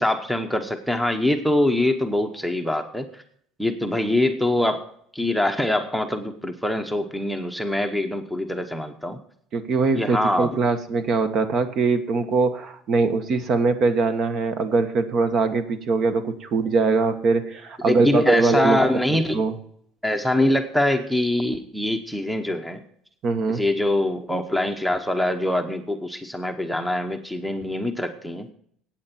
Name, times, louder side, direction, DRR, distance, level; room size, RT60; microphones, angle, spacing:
voice 1, 0.0-3.2 3.6-4.8 5.1-9.2 9.9-10.6 17.9-19.4 20.0-22.8 23.5-28.5, left 1 dB, ahead, 7 dB, 0.9 m, -24 dB
voice 2, 9.5-18.8 19.3-19.5 23.2-23.6, right 4 dB, 45° right, 9 dB, 1.4 m, -22 dB
15.0 x 8.9 x 4.4 m, 0.64 s
cardioid pair, 140°, 0 cm